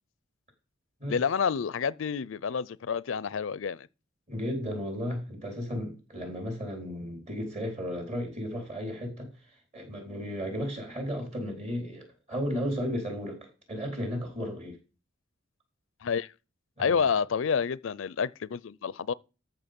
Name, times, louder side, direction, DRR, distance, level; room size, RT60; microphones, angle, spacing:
voice 1, 1.1-3.9 16.0-16.3 16.8-19.1, left 6 dB, 80° left, 0.5 m, -29 dB
voice 2, 4.3-9.3 9.7-14.8 16.8-17.1, equal, 35° right, 4.3 m, -34 dB
13.5 x 6.2 x 5.3 m
head